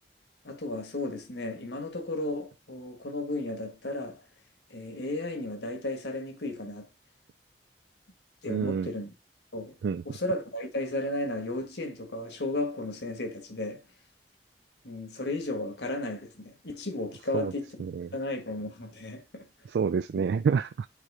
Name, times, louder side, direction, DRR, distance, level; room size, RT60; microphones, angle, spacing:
voice 1, 0.4-4.2 4.7-6.9 8.4-9.1 9.5-9.8 10.0-13.8 14.8-17.9 18.1-19.4 20.1-20.2, left 2 dB, 75° left, 1.7 m, -34 dB
voice 2, 8.5-8.9 9.8-10.0 17.3-17.5 17.8-18.1 19.7-20.9, right 6 dB, 75° right, 0.3 m, -28 dB
9.2 x 3.2 x 4.9 m
head